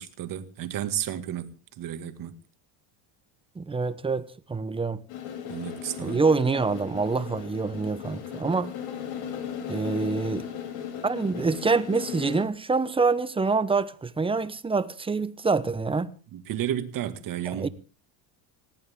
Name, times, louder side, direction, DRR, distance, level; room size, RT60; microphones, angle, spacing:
voice 1, 0.0-2.4 5.5-6.2 16.3-17.7, right 11 dB, 45° right, 2.0 m, -32 dB
voice 2, 3.6-5.0 6.0-8.7 9.7-10.5 11.0-16.2 17.5-17.7, right 4 dB, 10° right, 0.8 m, -26 dB
sound 1, 5.1-12.4, left 9 dB, 80° left, 7.6 m, -37 dB
20.0 x 17.5 x 3.7 m
cardioid pair, 150°, 46 cm